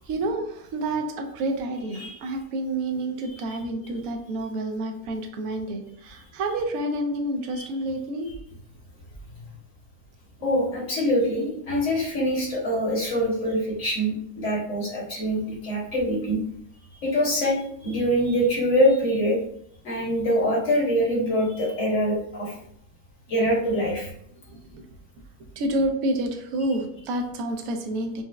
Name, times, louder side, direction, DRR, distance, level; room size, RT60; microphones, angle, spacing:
voice 1, 0.1-8.3 24.5-24.8 25.6-28.2, right 1 dB, 75° right, 4 dB, 1.0 m, -29 dB
voice 2, 10.4-16.4 17.0-17.6 17.8-19.4 19.8-22.5 23.3-24.1, equal, 55° left, -4 dB, 1.5 m, -24 dB
6.0 x 2.0 x 2.2 m, 0.67 s
omnidirectional pair, 1.5 m